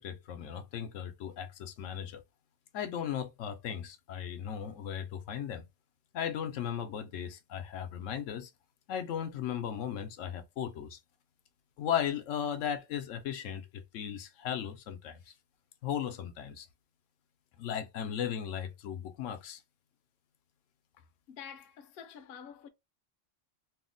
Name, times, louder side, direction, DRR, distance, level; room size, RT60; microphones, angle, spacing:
voice 1, 0.0-2.2 2.7-5.6 6.1-8.5 8.9-11.0 11.8-15.3 15.8-16.7 17.6-19.6, left 9 dB, 85° left, 0.9 m, -36 dB
voice 2, 21.0-22.7, left 8 dB, 65° left, 0.7 m, -48 dB
2.8 x 2.0 x 3.7 m
omnidirectional pair, 1.3 m